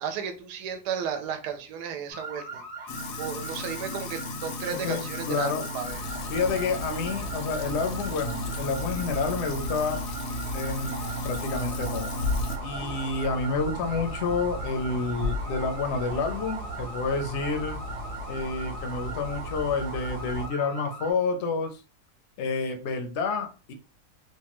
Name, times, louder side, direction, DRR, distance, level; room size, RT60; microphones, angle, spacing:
voice 1, 0.0-2.9 3.2-6.0, right 7 dB, 80° right, 1.1 m, -34 dB
sound 1, 2.1-21.1, right 2 dB, 25° right, 0.9 m, -41 dB
Sink (filling or washing), 2.9-12.6, left 2 dB, 85° left, 1.2 m, -36 dB
voice 2, 4.7-5.6 6.3-10.0 10.5-11.0 11.2-12.1 12.6-17.8 18.3-21.8 22.4-23.7, left 4 dB, 65° left, 0.7 m, -29 dB
sound 2, 5.8-20.5, left 1 dB, 65° right, 0.7 m, -36 dB
3.1 x 2.2 x 2.9 m
omnidirectional pair, 1.7 m